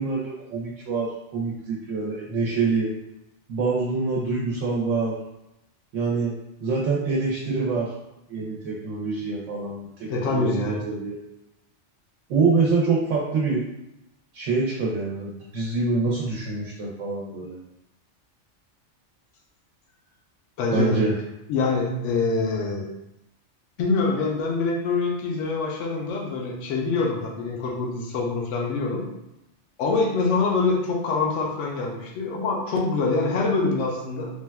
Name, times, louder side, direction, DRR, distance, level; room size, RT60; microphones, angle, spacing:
voice 1, 0.0-2.9 3.5-5.2 5.9-6.3 6.6-7.9 8.3-11.2 12.3-13.6 14.3-17.6 20.7-21.1, right 4 dB, 90° right, -4 dB, 0.9 m, -25 dB
voice 2, 10.1-10.8 20.6-21.0 21.5-22.9 23.8-29.0 29.8-34.3, left 3 dB, 80° left, -1 dB, 0.9 m, -25 dB
3.4 x 2.2 x 2.2 m, 0.89 s
omnidirectional pair, 1.2 m